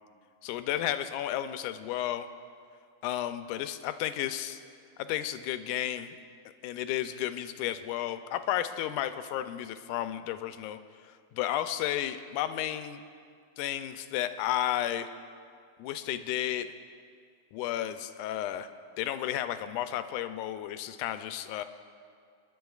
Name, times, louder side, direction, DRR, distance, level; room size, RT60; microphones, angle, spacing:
voice 1, 0.4-2.3 3.0-4.6 5.0-6.2 6.6-10.8 11.3-13.0 13.6-15.1 15.8-16.7 17.5-18.7 19.0-21.6, left 12 dB, 90° left, 10 dB, 2.1 m, -32 dB
29.0 x 11.0 x 2.4 m, 2.2 s
omnidirectional pair, 3.5 m